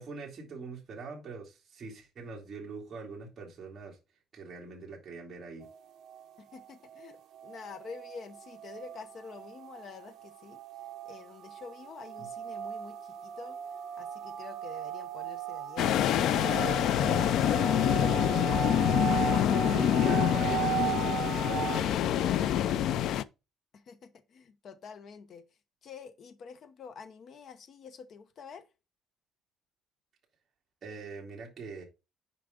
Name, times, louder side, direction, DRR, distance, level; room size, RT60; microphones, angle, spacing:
voice 1, 0.0-4.0 4.3-5.7 12.2-12.3 19.7-23.1 30.8-31.8, right 4 dB, 30° right, 2.5 m, -43 dB
sound 1, 5.6-21.8, right 10 dB, 55° right, 0.9 m, -37 dB
voice 2, 6.4-10.6 11.0-13.6 14.0-17.9 23.7-25.4 25.8-28.7, left 6 dB, 45° left, 0.9 m, -48 dB
sound 2, 15.8-23.2, left 11 dB, 65° left, 0.4 m, -26 dB
7.0 x 5.1 x 5.0 m
cardioid pair, 155°, 0 cm